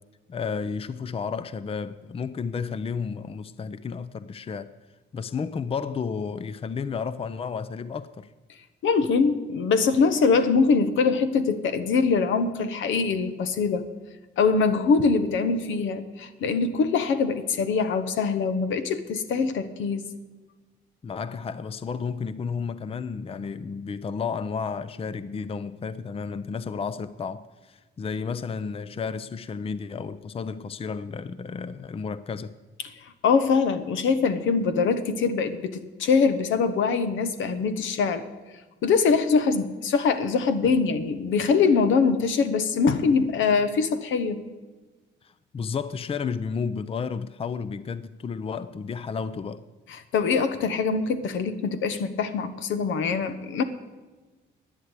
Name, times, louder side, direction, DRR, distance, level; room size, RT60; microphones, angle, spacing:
voice 1, 0.3-4.7 5.1-8.3 21.0-32.5 45.2-49.6, left 5 dB, 30° left, 0.5 m, -32 dB
voice 2, 8.8-13.9 14.4-20.1 33.2-38.2 38.8-44.5 49.9-53.6, left 5 dB, 80° left, 1.1 m, -23 dB
11.5 x 9.4 x 8.2 m
cardioid pair, 90°, 20 cm